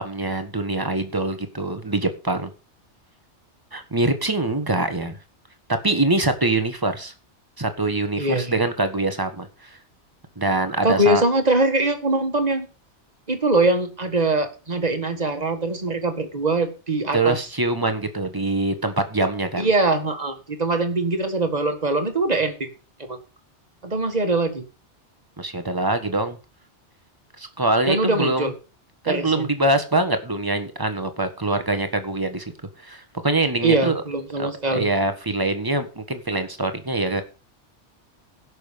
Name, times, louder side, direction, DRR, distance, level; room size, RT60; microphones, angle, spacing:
voice 1, 0.0-2.5 3.7-5.2 5.8-7.1 7.6-9.8 10.4-11.2 17.1-19.7 25.4-26.4 27.4-28.5 29.0-32.5 32.8-34.0 34.4-37.2, right 2 dB, 20° right, 8 dB, 1.4 m, -24 dB
voice 2, 8.2-8.6 10.8-12.7 13.3-17.4 19.6-22.7 23.0-23.2 23.8-24.6 27.9-28.5 29.1-29.5 33.6-34.9, right 2 dB, 35° right, 7 dB, 1.8 m, -22 dB
16.0 x 6.4 x 5.2 m, 0.33 s
omnidirectional pair, 1.2 m